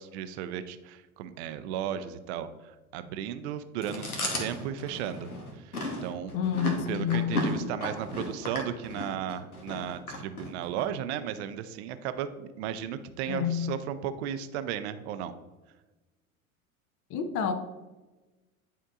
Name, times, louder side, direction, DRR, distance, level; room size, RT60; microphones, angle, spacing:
voice 1, 0.0-4.1 4.4-6.3 6.9-15.3, right 9 dB, 50° right, 12 dB, 0.5 m, -35 dB
Chewing mastication, 3.8-10.9, left 1 dB, 85° left, 1.1 m, -34 dB
voice 2, 6.3-7.3 13.3-13.7 17.1-17.5, left 8 dB, 35° left, 8 dB, 0.6 m, -28 dB
10.0 x 4.4 x 2.4 m, 1.2 s
figure-of-eight pair, 75°, 43 cm